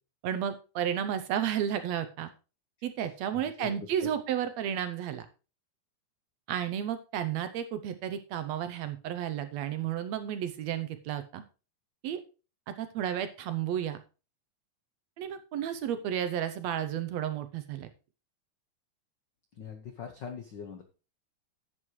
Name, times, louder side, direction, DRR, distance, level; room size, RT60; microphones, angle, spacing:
voice 1, 0.2-2.3 2.8-5.3 6.5-11.4 12.0-12.2 12.7-14.0 15.2-17.9, right 10 dB, 70° right, 10 dB, 1.8 m, -32 dB
voice 2, 3.3-3.7 4.0-4.1 19.6-20.8, left 7 dB, 80° left, 5 dB, 1.0 m, -42 dB
11.0 x 8.1 x 3.1 m, 0.32 s
omnidirectional pair, 3.5 m